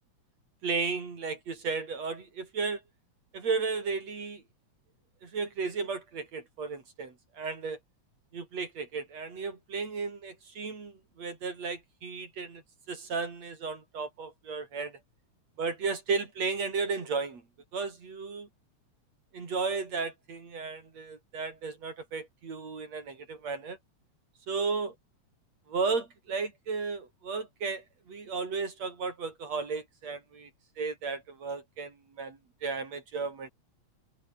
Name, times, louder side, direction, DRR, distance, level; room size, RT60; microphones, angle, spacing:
voice 1, 0.6-2.8 3.3-4.4 5.2-7.8 8.3-12.6 12.9-15.0 15.6-17.4 17.7-18.5 19.3-23.8 24.5-24.9 25.7-30.5 30.8-33.5, right 4 dB, 60° right, 5.2 m, -34 dB
open air
omnidirectional pair, 3.4 m